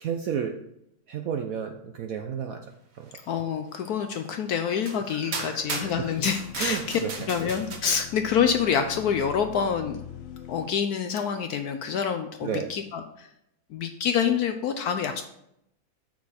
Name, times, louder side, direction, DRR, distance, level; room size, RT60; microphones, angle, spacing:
voice 1, 0.0-0.6 1.1-2.6 3.0-3.1 5.1-6.1 6.6-7.1 12.4-12.7, right 7 dB, 70° right, 5 dB, 0.8 m, -32 dB
voice 2, 3.3-10.0 10.5-13.3 13.7-15.2, left 7 dB, 70° left, 7 dB, 0.9 m, -27 dB
sound 1, 4.1-4.2 4.8-5.0 5.3-7.8, right 4 dB, 45° right, 1.0 m, -35 dB
sound 2, 5.6-10.7, left 9 dB, 90° left, 0.5 m, -43 dB
7.7 x 6.0 x 4.2 m, 0.79 s
omnidirectional pair, 2.0 m